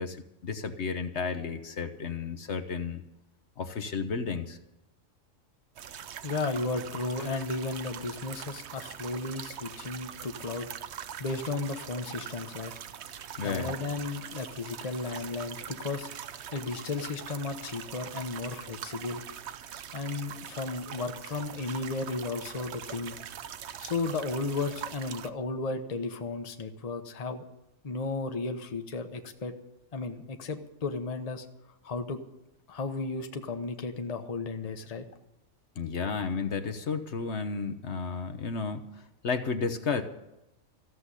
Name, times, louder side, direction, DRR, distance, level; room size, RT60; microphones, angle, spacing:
voice 1, 0.0-3.0 3.6-4.6 13.4-13.7 35.8-40.0, left 5 dB, 60° left, 8 dB, 1.2 m, -32 dB
sound 1, 5.8-25.3, right 9 dB, 60° right, 0.9 m, -42 dB
voice 2, 6.2-10.7 11.2-12.7 13.4-16.1 16.5-19.2 19.9-23.2 23.8-27.4 27.8-29.5 29.9-31.5 31.8-32.2 32.7-35.0, left 3 dB, 30° left, 6 dB, 1.0 m, -34 dB
14.5 x 7.7 x 9.8 m, 0.89 s
omnidirectional pair, 1.4 m